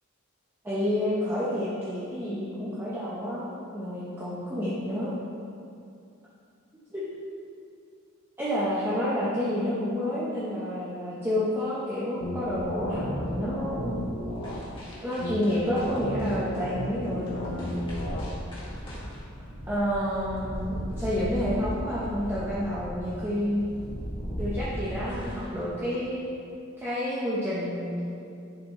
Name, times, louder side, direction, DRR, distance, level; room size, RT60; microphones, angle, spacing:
voice 1, 0.6-5.1 6.9-7.0 8.4-14.0 15.0-17.8 19.7-23.7 24.4-26.3 26.8-28.3, equal, 10° right, -10 dB, 1.1 m, -29 dB
sound 1, 12.2-14.6 15.2-18.2, left 1 dB, 90° left, 1.2 m, -34 dB
sound 2, 12.3-25.7, equal, 25° left, 2.0 m, -38 dB
10.5 x 6.0 x 3.2 m, 2.5 s
head